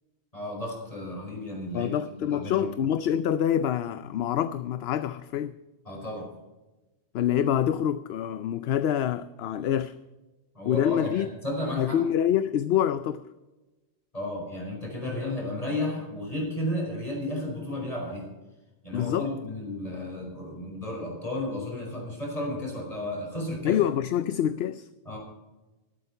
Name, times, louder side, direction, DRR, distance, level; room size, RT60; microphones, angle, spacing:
voice 1, 0.3-2.7 5.9-6.3 10.5-12.0 14.1-18.3 18.8-23.8 25.1-25.2, left 1 dB, 35° left, 5.4 m, -33 dB
voice 2, 1.7-5.6 7.1-9.9 10.7-11.3 11.8-13.3 18.9-19.3 23.6-24.9, left 10 dB, 70° left, 0.8 m, -26 dB
13.5 x 12.0 x 5.5 m
omnidirectional pair, 1.1 m